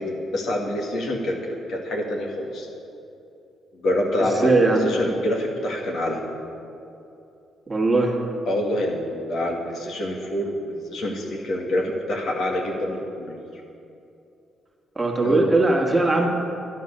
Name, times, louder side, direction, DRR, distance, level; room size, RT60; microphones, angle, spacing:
voice 1, 0.0-2.7 3.7-6.2 8.4-13.4 15.2-15.6, left 1 dB, 65° left, 0 dB, 2.3 m, -26 dB
voice 2, 4.2-4.8 7.7-8.2 15.0-16.3, right 2 dB, 20° right, 0 dB, 2.0 m, -20 dB
11.0 x 10.5 x 6.8 m, 2.7 s
cardioid pair, 90°, 0 cm